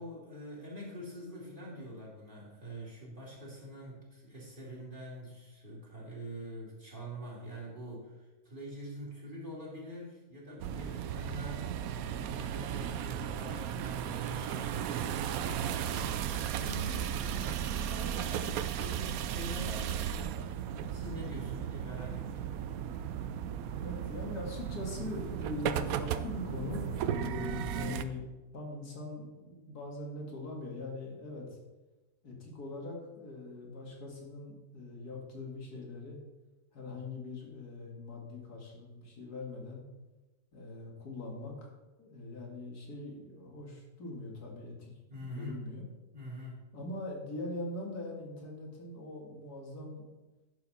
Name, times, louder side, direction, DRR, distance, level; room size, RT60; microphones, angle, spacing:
voice 1, 0.0-11.7 12.0-20.6 20.9-22.5 45.1-45.7 46.1-46.7, equal, 35° right, -4 dB, 2.9 m, -45 dB
sound 1, 10.6-28.0, right 9 dB, 75° right, 1.0 m, -35 dB
voice 2, 23.8-28.2 28.5-31.5 32.2-36.2 36.7-39.8 40.5-41.7 42.0-45.8 46.7-50.1, left 2 dB, 80° left, -1 dB, 2.5 m, -42 dB
11.0 x 6.9 x 4.1 m, 1.1 s
omnidirectional pair, 1.6 m